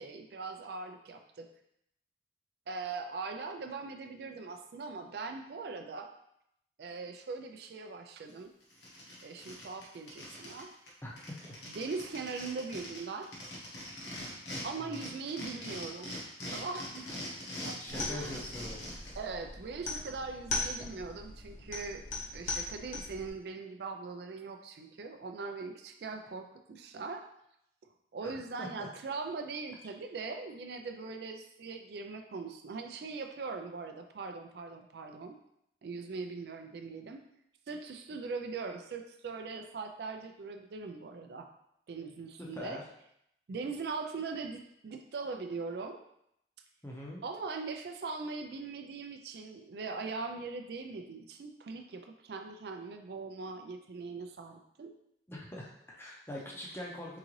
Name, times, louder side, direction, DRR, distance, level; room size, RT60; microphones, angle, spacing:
voice 1, 0.0-1.5 2.7-6.1 6.8-8.5 9.2-10.7 11.7-13.3 14.6-16.2 16.5-17.1 17.6-18.4 19.2-22.0 22.3-27.3 28.1-35.4 35.8-37.2 37.7-41.5 41.9-42.8 43.5-46.0 47.2-54.9, right 4 dB, 60° right, 5 dB, 0.4 m, -41 dB
sound 1, 8.3-8.4 8.7-10.6 10.9-11.0 11.2-14.6 14.9-19.2, left 1 dB, 70° left, 1.3 m, -42 dB
voice 2, 14.8-15.1 17.8-18.9 28.2-28.3 28.6-28.9 42.4-42.8 46.8-47.2 55.3-57.2, left 1 dB, 15° left, -3 dB, 0.6 m, -43 dB
sound 2, 17.9-23.3, left 3 dB, 45° left, 0.9 m, -39 dB
3.8 x 3.8 x 3.1 m, 0.77 s
head